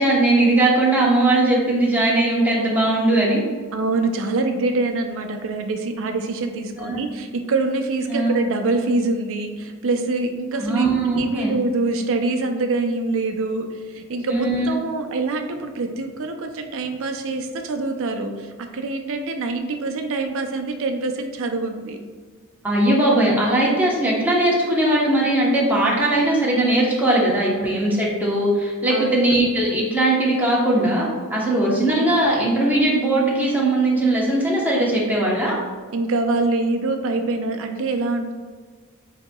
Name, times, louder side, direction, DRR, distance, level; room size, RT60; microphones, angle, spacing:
voice 1, 0.0-3.4 6.8-7.0 8.1-8.4 10.6-11.6 14.3-14.7 22.6-35.6, right 1 dB, 10° right, -5 dB, 1.0 m, -19 dB
voice 2, 3.7-22.0 27.2-27.3 28.9-29.2 31.5-31.7 35.9-38.4, right 3 dB, 65° right, 6 dB, 0.5 m, -25 dB
7.5 x 2.8 x 2.3 m, 1.5 s
head